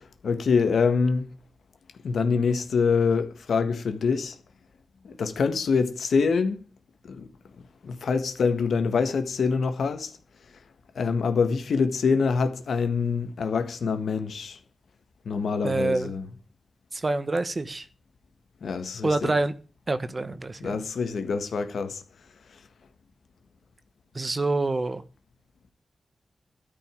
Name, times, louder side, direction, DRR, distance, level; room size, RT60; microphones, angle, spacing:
voice 1, 0.2-1.2 2.0-4.3 5.0-6.6 7.0-7.3 7.8-10.1 10.9-14.6 15.2-16.3 18.6-19.3 20.6-22.0, left 5 dB, 90° left, 1.6 m, -25 dB
voice 2, 15.6-16.1 16.9-17.9 19.0-19.5 19.9-20.8 24.1-25.0, right 2 dB, 35° right, 1.2 m, -26 dB
13.0 x 5.4 x 9.0 m
wide cardioid pair, 90°, 0 cm